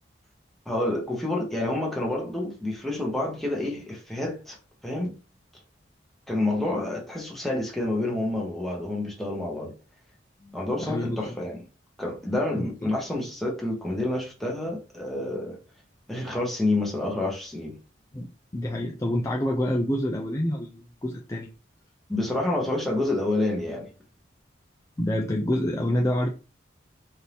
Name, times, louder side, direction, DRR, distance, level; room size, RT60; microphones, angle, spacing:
voice 1, 0.7-4.6 4.8-5.1 6.3-9.7 10.5-11.6 12.0-15.6 16.1-17.7 22.1-23.9, left 2 dB, ahead, 1.1 m, -28 dB
voice 2, 10.4-11.3 12.5-12.9 18.1-21.5 25.0-26.3, left 1 dB, 15° left, 0.4 m, -28 dB
4.3 x 2.8 x 3.4 m
head